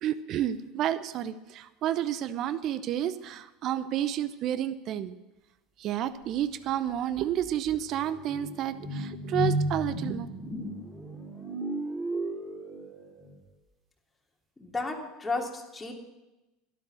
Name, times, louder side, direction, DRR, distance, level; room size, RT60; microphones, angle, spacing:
voice 1, 0.0-5.1 5.8-10.3, right 11 dB, 50° right, 14 dB, 0.8 m, -30 dB
sound 1, 6.7-6.8 7.1-13.3, equal, 10° right, 4.4 m, -34 dB
voice 2, 14.6-15.9, left 3 dB, 15° left, 0 dB, 3.0 m, -33 dB
12.5 x 12.0 x 6.5 m, 1.0 s
figure-of-eight pair, 75°, 0 cm